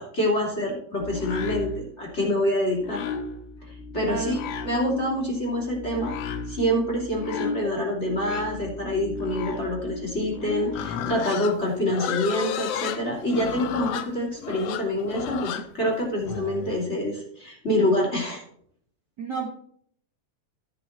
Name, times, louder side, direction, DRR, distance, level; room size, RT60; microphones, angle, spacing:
voice 1, 0.0-3.0 3.7-6.1 6.5-18.4, left 1 dB, 25° left, -2 dB, 2.8 m, -26 dB
sound 1, 1.0-11.0, left 4 dB, 85° left, 2.4 m, -35 dB
voice 2, 3.9-4.4 19.2-19.5, right 5 dB, 45° right, -1 dB, 1.6 m, -30 dB
Livestock farm animals working animals, 10.7-16.8, left 9 dB, 70° left, 1.6 m, -32 dB
13.5 x 7.8 x 4.3 m, 0.66 s
omnidirectional pair, 3.3 m